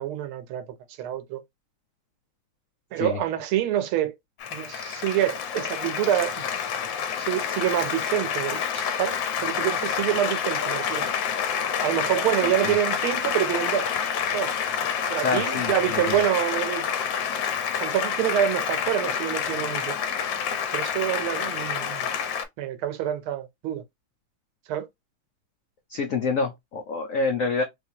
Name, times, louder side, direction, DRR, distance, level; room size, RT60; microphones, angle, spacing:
voice 1, 0.0-1.4 2.9-4.1 4.5-6.4 7.2-11.1 11.8-13.9 14.3-14.5 15.1-16.9 17.8-20.0 20.7-22.1 22.6-23.8 24.7-24.9, right 11 dB, 80° right, 1.5 m, -27 dB
Applause, 4.4-22.4, left 7 dB, 70° left, 1.3 m, -28 dB
voice 2, 12.4-12.7 15.2-16.2 25.9-27.6, left 4 dB, 85° left, 0.7 m, -27 dB
3.4 x 3.2 x 2.7 m
omnidirectional pair, 2.3 m